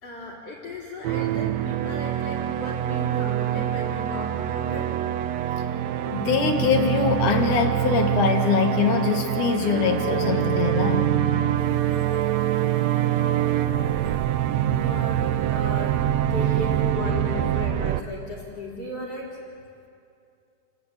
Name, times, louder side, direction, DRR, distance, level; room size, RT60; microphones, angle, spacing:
voice 1, 0.0-5.0 14.7-16.0 16.3-19.4, left 2 dB, 45° left, -3 dB, 4.9 m, -35 dB
sound 1, 1.0-18.0, right 12 dB, 75° right, 1.7 m, -25 dB
voice 2, 6.1-11.1 12.6-12.7, left 6 dB, 70° left, 4 dB, 3.1 m, -23 dB
29.0 x 15.0 x 9.2 m, 2.5 s
omnidirectional pair, 3.7 m